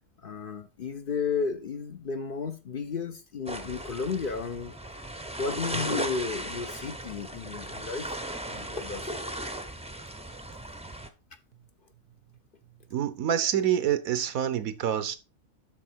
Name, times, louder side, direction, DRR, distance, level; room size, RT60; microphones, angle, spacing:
voice 1, 0.2-4.7 5.4-8.2 8.4-9.3, left 5 dB, 45° left, 0.8 m, -33 dB
sound 1, 3.5-11.1, right 1 dB, 5° right, 0.6 m, -36 dB
voice 2, 12.9-15.2, right 10 dB, 80° right, 1.3 m, -27 dB
12.0 x 4.4 x 4.5 m
omnidirectional pair, 1.5 m